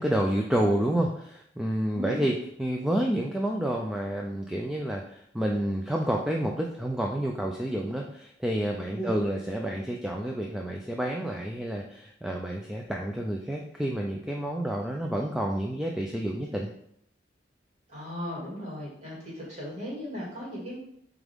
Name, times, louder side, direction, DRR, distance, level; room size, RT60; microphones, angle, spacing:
voice 1, 0.0-16.7, right 1 dB, 5° right, 0 dB, 0.4 m, -29 dB
voice 2, 1.9-2.3 8.9-9.1 17.9-20.8, equal, 40° right, -6 dB, 2.5 m, -36 dB
7.5 x 3.6 x 3.6 m, 0.71 s
head